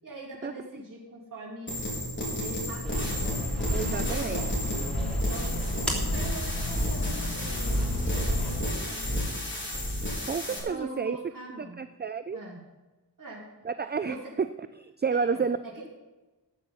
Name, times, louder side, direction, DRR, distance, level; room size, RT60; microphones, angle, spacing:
voice 1, 0.0-1.8 2.4-3.4 3.9-4.6 5.1-5.6 6.0-9.4 10.5-11.8 12.3-12.6 13.2-13.5 14.0-14.3 15.1-15.8, right 2 dB, 45° right, -4 dB, 3.4 m, -42 dB
sound 1, 1.7-10.6, left 1 dB, 25° left, 4.0 m, -32 dB
sound 2, 2.8-8.5, equal, ahead, 3.2 m, -31 dB
sound 3, 3.0-8.6, left 5 dB, 80° left, 1.1 m, -40 dB
voice 2, 3.7-4.4 10.3-11.2 11.6-12.4 13.6-14.5 14.8-15.6, right 5 dB, 25° right, 12 dB, 0.4 m, -30 dB
13.0 x 8.6 x 5.7 m, 1.1 s
wide cardioid pair, 100°, 42 cm